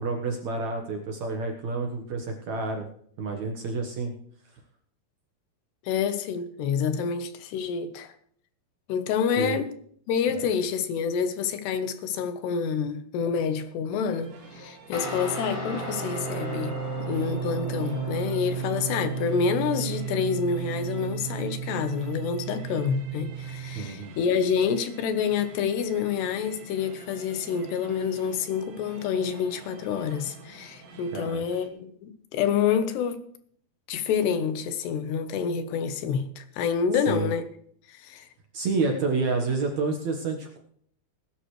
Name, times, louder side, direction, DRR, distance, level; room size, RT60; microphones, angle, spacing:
voice 1, 0.0-2.9 3.2-4.1 9.4-9.6 10.3-10.4 23.7-24.2 31.1-31.4 37.1-37.3 38.5-40.6, right 3 dB, 60° right, 2.1 m, -29 dB
voice 2, 5.8-8.1 8.9-9.7 10.1-16.8 17.1-33.2 33.9-37.5 37.9-38.2, left 6 dB, 80° left, 3.2 m, -28 dB
sound 1, 13.9-31.7, right 3 dB, 90° right, 4.4 m, -48 dB
Guitar, 14.9-23.8, right 5 dB, 40° left, 5.2 m, -33 dB
20.0 x 11.5 x 3.2 m
omnidirectional pair, 4.8 m